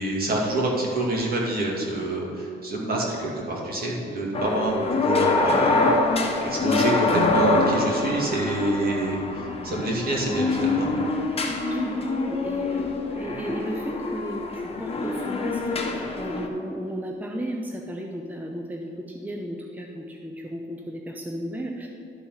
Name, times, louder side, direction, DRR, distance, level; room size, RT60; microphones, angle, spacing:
voice 1, 0.0-11.0, right 1 dB, 50° right, -3 dB, 2.3 m, -27 dB
sound 1, 4.3-16.5, left 3 dB, 30° left, 1.1 m, -25 dB
sound 2, 7.1-9.3, right 1 dB, 75° right, 2.0 m, -32 dB
voice 2, 11.7-21.9, equal, 10° right, 1 dB, 0.7 m, -34 dB
11.5 x 4.2 x 5.7 m, 2.5 s
cardioid pair, 90°, 20 cm